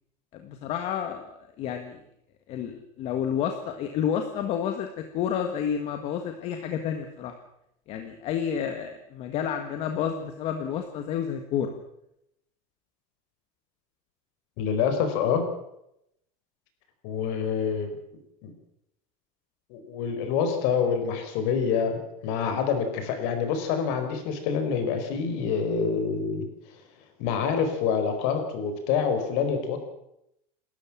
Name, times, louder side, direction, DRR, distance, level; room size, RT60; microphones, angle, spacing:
voice 1, 0.3-2.0 2.5-7.3 7.9-11.8, left 8 dB, 35° left, 6 dB, 1.6 m, -30 dB
voice 2, 14.6-15.4 17.0-18.0 18.4-18.5 19.7-26.8 27.2-29.8, left 6 dB, 50° left, 7 dB, 4.8 m, -27 dB
29.0 x 13.0 x 7.4 m, 0.80 s
cardioid pair, 180°, 18 cm